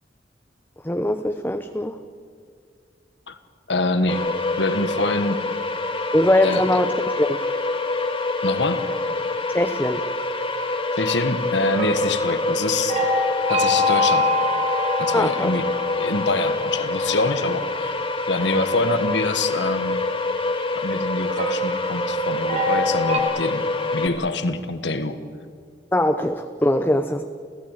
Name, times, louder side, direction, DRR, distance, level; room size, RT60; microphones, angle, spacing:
voice 1, 0.8-2.0 6.1-6.9 7.2-7.4 9.5-10.0 15.1-15.5 25.9-27.3, left 1 dB, 10° left, 7 dB, 0.8 m, -21 dB
voice 2, 3.7-4.3 4.6-5.4 6.4-6.6 8.4-8.9 10.9-13.0 13.5-14.3 15.0-15.6 16.0-17.9 18.3-20.0 20.7-23.6 23.9-25.2, left 2 dB, 70° left, 10 dB, 1.7 m, -25 dB
sound 1, 4.1-24.1, left 3 dB, 30° left, 2.1 m, -26 dB
sound 2, 11.7-16.6 21.3-23.2, left 1 dB, 40° right, 3.3 m, -24 dB
29.0 x 15.5 x 9.2 m, 2.1 s
head